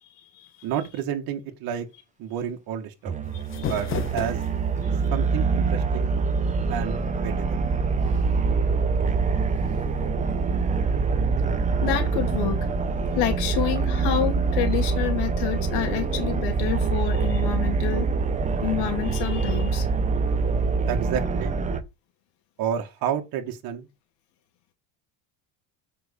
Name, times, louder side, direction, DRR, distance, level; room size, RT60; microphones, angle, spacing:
voice 1, 0.0-0.7 3.3-3.8 4.8-5.1 8.1-8.2 9.7-9.9 11.8-12.6 13.1-18.1 18.6-19.9, left 11 dB, 80° left, 2.6 m, -29 dB
voice 2, 0.6-1.9 2.2-3.1 3.6-3.9 4.1-4.4 5.1-6.1 6.7-7.6 20.9-21.6 22.6-23.9, right 9 dB, 55° right, 1.9 m, -30 dB
sound 1, 3.1-21.8, right 4 dB, 20° right, 0.9 m, -25 dB
sound 2, 3.2-4.8, left 8 dB, 30° left, 0.9 m, -33 dB
7.9 x 5.7 x 5.3 m
cardioid pair, 175°, 40 cm